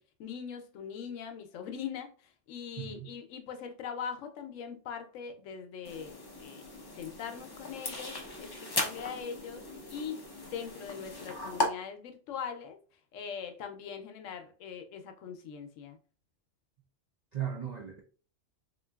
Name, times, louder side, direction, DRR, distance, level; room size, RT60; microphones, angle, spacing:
voice 1, 0.0-6.7 6.9-12.8 13.1-16.0, left 7 dB, 80° left, 0.9 m, -41 dB
voice 2, 2.8-3.1 17.3-18.0, right 9 dB, 60° right, 0.4 m, -36 dB
sound 1, 5.8-11.7, left 2 dB, 40° left, 0.3 m, -37 dB
3.7 x 2.6 x 2.2 m
omnidirectional pair, 1.3 m